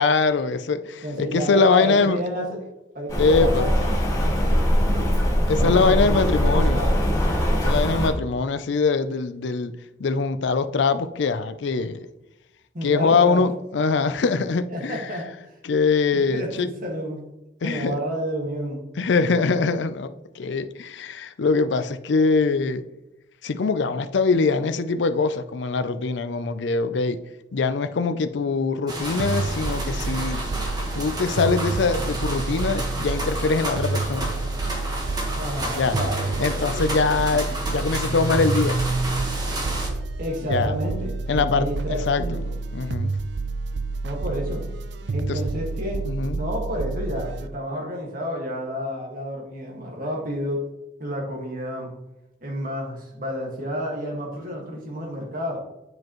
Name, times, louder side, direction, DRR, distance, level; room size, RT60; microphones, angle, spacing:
voice 1, 0.0-2.2 3.2-3.7 5.5-6.9 7.6-9.7 10.0-12.0 12.8-15.0 15.6-16.7 17.6-18.0 19.0-22.8 23.4-27.2 27.5-30.4 30.9-34.3 35.8-36.0 36.4-38.8 40.5-40.7 41.3-42.4 42.7-43.1 45.3-45.4 46.1-46.4, left 4 dB, 75° left, 0.5 m, -23 dB
voice 2, 1.0-2.6 2.9-3.9 4.2-5.1 5.5-6.9 12.7-13.5 14.7-15.6 16.1-17.2 17.6-18.9 35.3-36.8 37.3-37.6 40.2-42.6 44.0-44.7 45.1-46.1 46.4-50.6 51.0-51.9 52.4-55.6, equal, 45° right, 1.8 m, -30 dB
Rain, 3.1-8.1, equal, 20° left, 1.8 m, -21 dB
sound 1, 28.9-39.9, right 1 dB, 20° right, 1.3 m, -30 dB
sound 2, 29.2-47.5, right 3 dB, 65° right, 0.4 m, -29 dB
9.4 x 5.0 x 3.0 m
head